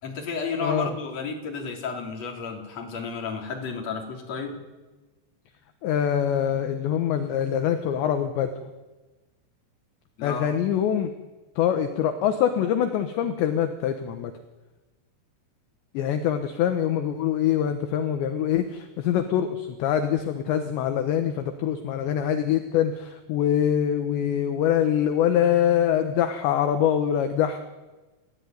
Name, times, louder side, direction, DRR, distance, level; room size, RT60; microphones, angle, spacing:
voice 1, 0.0-4.6 10.2-10.5, left 5 dB, 35° left, 1 dB, 4.3 m, -32 dB
voice 2, 5.8-8.5 10.2-11.1 11.6-14.3 15.9-27.6, left 9 dB, 70° left, 7 dB, 3.2 m, -24 dB
29.5 x 15.5 x 9.5 m, 1.2 s
omnidirectional pair, 5.9 m